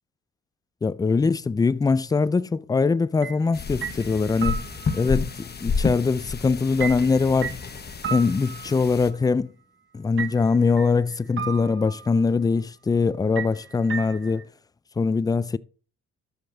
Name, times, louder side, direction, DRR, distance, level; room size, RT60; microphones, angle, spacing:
voice 1, 0.8-4.7 4.9-7.6 8.1-9.5 9.9-14.5 15.0-15.6, left 4 dB, 15° left, 0.3 m, -22 dB
sound 1, 3.2-3.5 3.8-5.2 6.8-9.1 10.2-11.0 11.4-12.2 13.4-14.4, right 7 dB, 40° right, 0.8 m, -34 dB
sound 2, 3.5-9.1, left 5 dB, 35° left, 1.2 m, -31 dB
13.0 x 5.2 x 3.9 m
cardioid pair, 90°, 30 cm